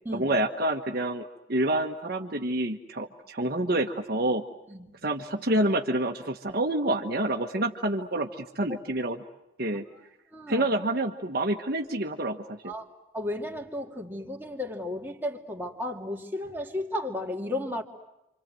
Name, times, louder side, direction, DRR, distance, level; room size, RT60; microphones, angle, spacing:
voice 1, 0.1-4.4 5.0-9.2 9.6-9.8 10.5-12.7, right 1 dB, 50° right, 4 dB, 1.4 m, -28 dB
voice 2, 10.3-10.7 12.6-12.9 13.1-17.8, left 1 dB, 10° right, 0 dB, 2.6 m, -34 dB
29.0 x 26.0 x 7.8 m, 0.92 s
head